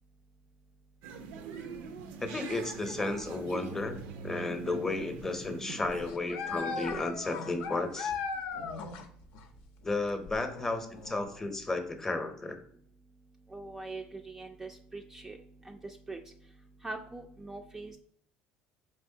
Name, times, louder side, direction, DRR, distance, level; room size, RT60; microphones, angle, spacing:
sound 1, 1.0-6.1, right 5 dB, 80° right, 0.5 m, -43 dB
voice 1, 2.2-4.0 4.2-8.1 9.8-12.6, left 2 dB, 15° left, 6 dB, 0.7 m, -33 dB
sound 2, 5.9-9.1 9.3-9.4 10.3-11.3, left 5 dB, 75° left, 0.6 m, -37 dB
voice 2, 13.5-15.4 15.6-16.2 16.8-18.0, right 3 dB, 15° right, 3 dB, 0.3 m, -42 dB
4.3 x 3.2 x 2.7 m, 0.67 s
supercardioid pair, 95°, 3 cm